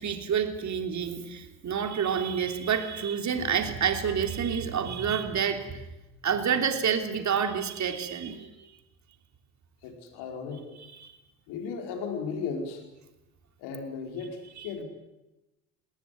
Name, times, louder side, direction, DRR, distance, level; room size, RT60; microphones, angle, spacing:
voice 1, 0.0-5.8 6.2-8.7 10.8-11.2 14.6-14.7, right 7 dB, 40° right, 6 dB, 3.3 m, -28 dB
voice 2, 9.8-10.7 11.5-12.8 13.6-14.8, left 5 dB, 65° left, 3 dB, 5.1 m, -35 dB
20.5 x 19.0 x 9.4 m, 0.98 s
hypercardioid pair, 70°, 43 cm